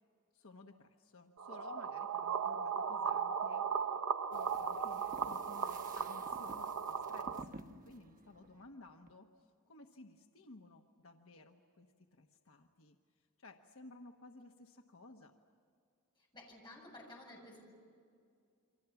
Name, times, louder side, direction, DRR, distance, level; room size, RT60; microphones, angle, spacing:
voice 1, 0.3-3.7 4.3-11.9 12.1-13.0 13.4-15.3, left 2 dB, 70° left, 4 dB, 1.2 m, -56 dB
sound 1, 1.4-7.4, right 6 dB, 85° right, 0.7 m, -37 dB
sound 2, 4.3-9.1, right 2 dB, 40° right, 1.1 m, -54 dB
voice 2, 16.3-17.7, left 1 dB, 20° left, -1 dB, 7.3 m, -53 dB
28.5 x 25.0 x 7.1 m, 2.3 s
head